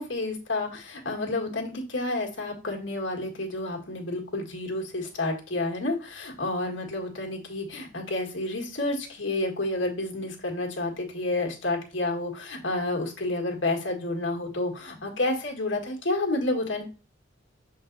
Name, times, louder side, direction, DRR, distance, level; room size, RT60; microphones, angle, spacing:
voice 1, 0.0-16.8, left 2 dB, 70° left, 1 dB, 1.7 m, -30 dB
7.3 x 3.9 x 3.9 m, 0.34 s
head